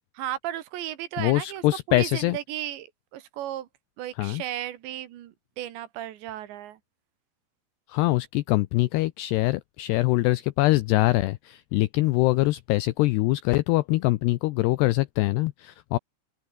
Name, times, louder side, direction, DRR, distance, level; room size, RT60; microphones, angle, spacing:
voice 1, 0.2-1.6 1.9-3.7 4.0-6.8, right 12 dB, 70° right, 3.6 m, -35 dB
voice 2, 1.2-2.4 4.2-4.4 7.9-16.0, left 19 dB, 85° left, 2.4 m, -23 dB
open air
omnidirectional pair, 5.5 m